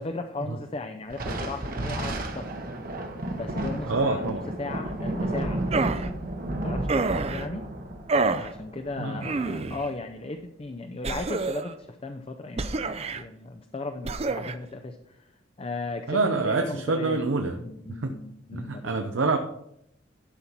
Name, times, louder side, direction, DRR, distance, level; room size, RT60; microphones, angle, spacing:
voice 1, 0.0-2.5 3.3-5.9 6.5-7.7 8.4-15.3 15.6-17.2 17.5-19.1, left 3 dB, 30° left, 6 dB, 0.5 m, -36 dB
Thunder, 1.1-9.9, right 1 dB, 50° right, 1.1 m, -33 dB
voice 2, 3.9-4.4 9.0-9.2 16.1-17.5 18.0-18.1 18.5-19.4, right 3 dB, 80° right, 5 dB, 0.7 m, -26 dB
sound 1, 5.7-6.1 6.9-7.5 8.1-8.5 9.2-9.9 11.0-11.7 12.6-13.2 14.0-14.5, right 3 dB, 35° right, 0.5 m, -27 dB
11.5 x 5.6 x 4.5 m, 0.78 s
head